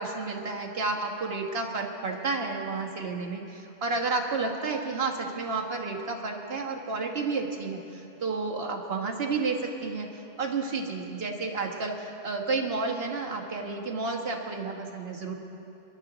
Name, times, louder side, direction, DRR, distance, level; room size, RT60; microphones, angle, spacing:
voice 1, 0.0-15.3, right 3 dB, 60° right, 2 dB, 1.5 m, -31 dB
23.0 x 11.0 x 3.9 m, 2.9 s
omnidirectional pair, 1.1 m